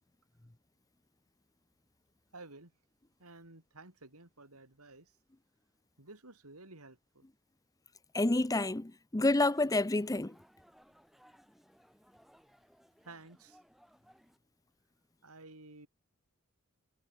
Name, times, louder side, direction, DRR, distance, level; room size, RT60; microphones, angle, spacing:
voice 1, 2.3-2.7 3.2-5.1 6.0-7.2 13.0-13.6 15.2-15.9, right 2 dB, 80° right, 4.8 m, -53 dB
voice 2, 8.1-10.3, left 2 dB, 15° left, 0.7 m, -29 dB
sound 1, 9.4-14.4, equal, ahead, 8.0 m, -63 dB
head